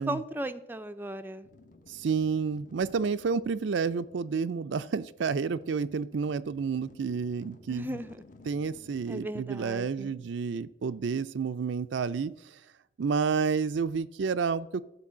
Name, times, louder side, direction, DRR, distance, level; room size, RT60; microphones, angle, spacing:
voice 1, 0.0-1.5 7.7-8.2 9.1-10.2, right 1 dB, 10° right, 9 dB, 0.4 m, -36 dB
sound 1, 1.4-9.1, left 2 dB, 45° left, 0.8 m, -56 dB
voice 2, 1.9-7.9 8.5-12.3 13.0-14.8, right 5 dB, 75° right, 13 dB, 0.4 m, -30 dB
13.5 x 4.5 x 7.3 m, 0.89 s
head